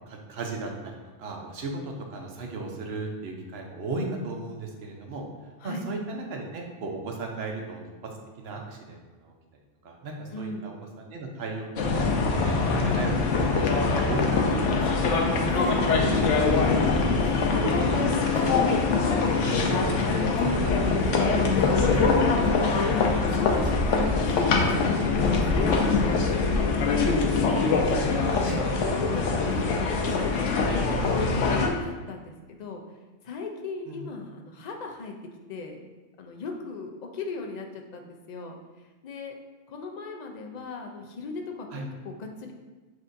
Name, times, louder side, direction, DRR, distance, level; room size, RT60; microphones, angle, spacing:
voice 1, 0.1-0.9 1.2-5.2 5.6-7.8 8.4-9.3 9.8-11.7 12.1-15.0 15.9-16.7 17.0-22.7 28.4-28.8 33.9-34.0 41.7-41.9, right 3 dB, 60° right, 1 dB, 0.9 m, -35 dB
voice 2, 10.3-10.7 15.5-15.8 20.7-21.0 23.3-27.6 28.2-28.4 28.8-32.8 33.2-35.1 35.5-35.8 36.2-38.6 39.0-39.3 39.7-42.5, left 3 dB, 50° left, 2 dB, 0.5 m, -37 dB
sound 1, 11.8-31.7, left 4 dB, 80° left, 1.0 m, -23 dB
7.6 x 2.7 x 2.6 m, 1.2 s
omnidirectional pair, 1.2 m